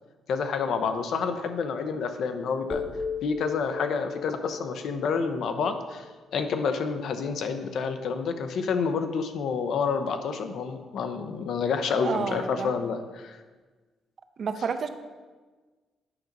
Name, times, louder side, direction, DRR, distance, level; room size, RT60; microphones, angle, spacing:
voice 1, 0.3-2.8 3.2-6.1 6.3-13.4, left 5 dB, 65° left, 8 dB, 0.6 m, -28 dB
sound 1, 2.7-6.8, left 5 dB, 20° left, 0.9 m, -37 dB
voice 2, 12.0-12.8 14.4-14.9, right 6 dB, 45° right, 9 dB, 0.5 m, -30 dB
8.7 x 5.2 x 3.9 m, 1.4 s
cardioid pair, 125°, 0 cm